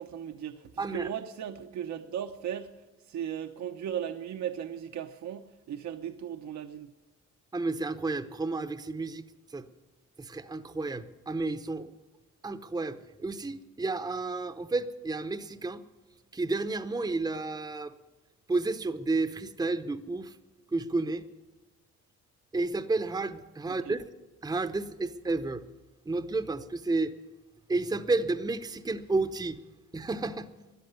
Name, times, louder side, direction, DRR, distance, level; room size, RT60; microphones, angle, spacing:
voice 1, 0.0-2.7 3.1-6.9 23.7-24.0, right 9 dB, 65° right, 6 dB, 0.9 m, -37 dB
voice 2, 0.8-1.1 7.5-9.2 9.5-9.7 10.2-11.9 12.4-15.8 16.3-17.9 18.5-20.4 20.7-21.2 22.5-24.0 24.4-25.6 26.1-27.1 27.7-29.6 29.9-30.5, right 3 dB, 15° right, 9 dB, 0.8 m, -31 dB
13.5 x 9.8 x 9.3 m, 1.1 s
cardioid pair, 90°, 30 cm